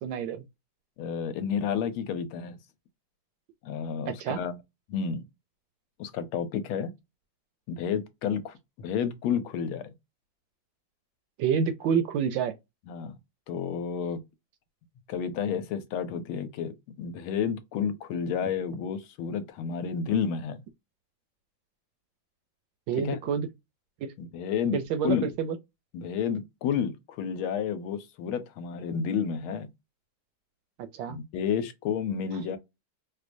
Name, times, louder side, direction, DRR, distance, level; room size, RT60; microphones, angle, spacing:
voice 1, 0.0-0.4 4.1-4.4 11.4-12.5 22.9-23.5 24.0-24.1 24.7-25.6 30.8-31.2, right 7 dB, 75° right, 1.2 m, -28 dB
voice 2, 1.0-2.6 3.6-4.6 4.9-5.2 6.0-6.9 7.7-9.9 12.9-13.2 13.5-14.2 15.1-16.7 17.0-20.6 23.0-23.2 24.2-24.8 25.0-25.3 25.9-29.7 31.1-32.6, left 7 dB, 85° left, 1.5 m, -30 dB
4.7 x 2.2 x 2.5 m
omnidirectional pair, 2.3 m